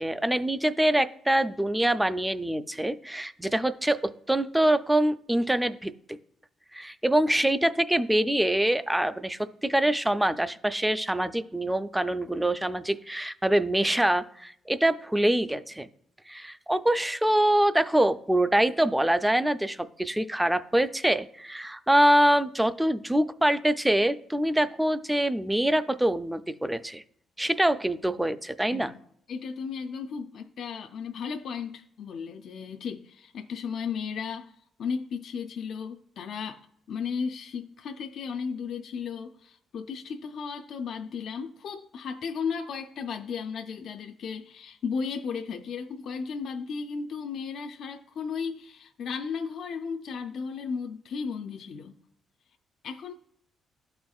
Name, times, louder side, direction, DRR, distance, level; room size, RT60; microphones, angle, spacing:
voice 1, 0.0-5.9 6.7-15.9 16.3-27.0 27.4-28.9, right 1 dB, 5° right, 11 dB, 0.3 m, -25 dB
voice 2, 29.3-34.5 34.8-36.6 36.9-51.9 52.8-53.1, left 6 dB, 65° left, 5 dB, 0.4 m, -35 dB
12.5 x 4.3 x 2.3 m, 0.68 s
cardioid pair, 125°, 0 cm